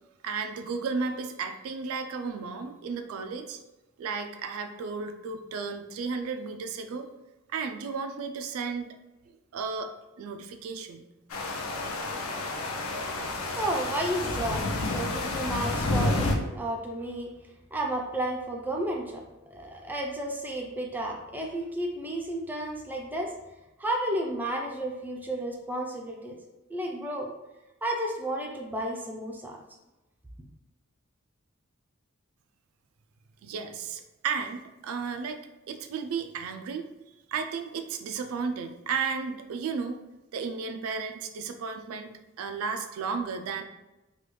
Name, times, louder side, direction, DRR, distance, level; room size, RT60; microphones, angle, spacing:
voice 1, 0.2-3.6 4.0-7.1 7.5-9.0 9.5-9.9 10.2-11.1 33.4-35.4 35.7-36.9 37.3-40.0 40.3-42.1 42.4-43.6, right 5 dB, 85° right, 8 dB, 0.3 m, -33 dB
sound 1, 11.3-16.3, left 2 dB, 85° left, 0.5 m, -30 dB
voice 2, 13.6-17.3 17.7-19.2 19.5-23.3 23.8-26.4 26.7-27.3 27.8-29.6, right 1 dB, 10° right, 0 dB, 0.3 m, -32 dB
3.3 x 2.2 x 3.1 m, 1.0 s
head